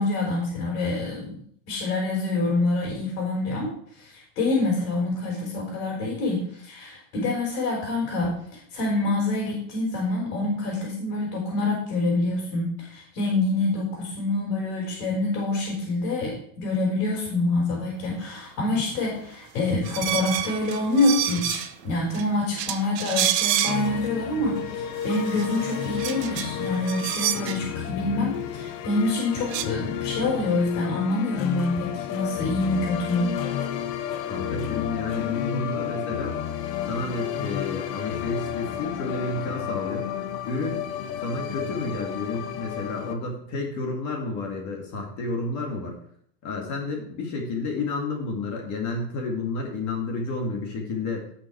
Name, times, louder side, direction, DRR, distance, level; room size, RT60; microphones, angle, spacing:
voice 1, 0.0-1.4 1.7-3.7 3.9-33.3, left 2 dB, 55° left, -2 dB, 4.7 m, -26 dB
sound 1, 19.8-21.8 22.1-22.2 22.6-24.1 24.6-24.7 25.0-27.6 29.0-29.1 29.3-29.6, right 12 dB, 75° right, 1.3 m, -29 dB
sound 2, 23.7-43.2, left 9 dB, 85° left, 1.3 m, -31 dB
voice 2, 34.3-36.4 36.9-40.1 40.4-40.8 41.2-46.0 46.4-51.2, left 3 dB, 35° left, 1 dB, 2.3 m, -30 dB
17.5 x 5.9 x 4.7 m, 0.63 s
supercardioid pair, 165°, 49 cm